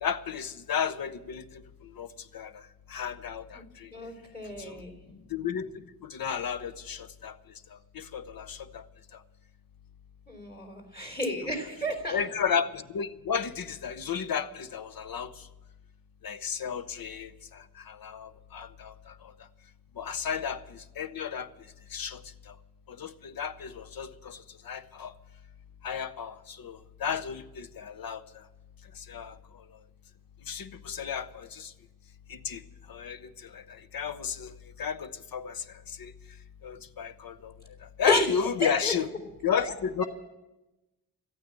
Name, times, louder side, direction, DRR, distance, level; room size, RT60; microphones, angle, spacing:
voice 1, 0.0-1.4 2.0-2.1 2.3-2.5 2.9-3.9 4.7-4.8 5.3-5.7 6.0-7.3 7.9-8.8 12.1-15.3 16.2-18.9 20.0-21.5 21.9-22.2 22.9-24.4 24.7-25.1 25.8-28.2 29.1-29.3 30.5-31.7 32.3-32.6 32.9-33.2 33.5-35.6 36.0-36.1 36.6-37.5 38.0-39.1 39.4-40.0, left 7 dB, 60° left, 13 dB, 0.8 m, -33 dB
voice 2, 3.9-4.9 10.3-12.2 38.0-38.2 38.6-38.9 39.6-39.7, left 1 dB, 25° left, 4 dB, 3.3 m, -31 dB
13.5 x 9.1 x 8.8 m, 1.0 s
wide cardioid pair, 100°, 39 cm